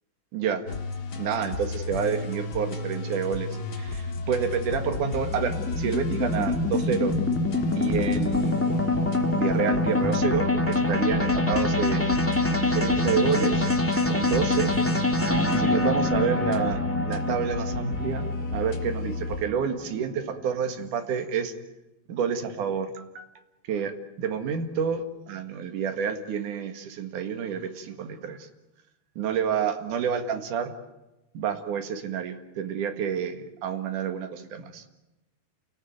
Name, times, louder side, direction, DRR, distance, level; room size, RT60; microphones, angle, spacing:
voice 1, 0.3-0.6 1.2-7.2 7.8-8.6 9.4-13.7 14.1-14.7 15.5-16.8 17.0-21.5 22.1-23.2 23.7-23.9 24.2-28.5 29.2-30.7 31.3-34.8, right 7 dB, 75° right, 6 dB, 3.4 m, -29 dB
sound 1, 0.7-19.4, left 3 dB, 40° left, 1.6 m, -33 dB
sound 2, 3.9-20.3, left 2 dB, 5° left, 1.8 m, -26 dB
30.0 x 17.5 x 9.5 m, 0.99 s
omnidirectional pair, 3.7 m